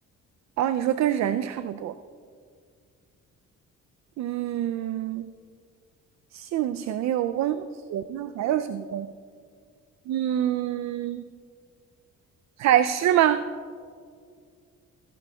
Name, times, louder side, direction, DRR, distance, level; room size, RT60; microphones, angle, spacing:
voice 1, 0.6-1.9 4.2-5.3 6.3-7.6 7.9-9.1 10.1-11.2 12.6-13.4, right 11 dB, 65° right, 11 dB, 0.4 m, -25 dB
17.5 x 11.0 x 2.3 m, 2.1 s
cardioid pair, 90°, 30 cm